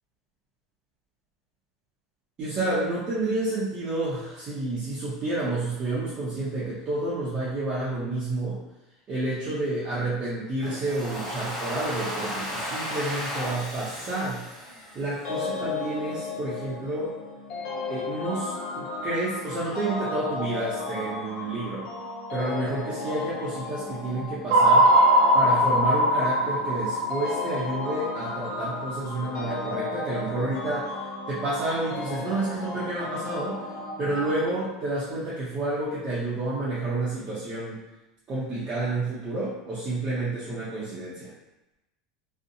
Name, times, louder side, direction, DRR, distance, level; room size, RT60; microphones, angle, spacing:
voice 1, 2.4-8.6 9.1-14.4 14.9-17.2 17.9-21.9 22.3-24.9 25.3-31.0 31.3-33.6 34.0-37.8 38.3-41.3, right 2 dB, 35° right, -9 dB, 0.6 m, -30 dB
Domestic sounds home sounds, 10.6-15.6, equal, 10° left, 0.7 m, -34 dB
sound 1, 15.2-34.5, left 3 dB, 50° left, 1.1 m, -34 dB
sound 2, 24.5-28.7, right 1 dB, 75° right, 0.4 m, -21 dB
2.6 x 2.0 x 2.6 m, 0.97 s
supercardioid pair, 135°, 3 cm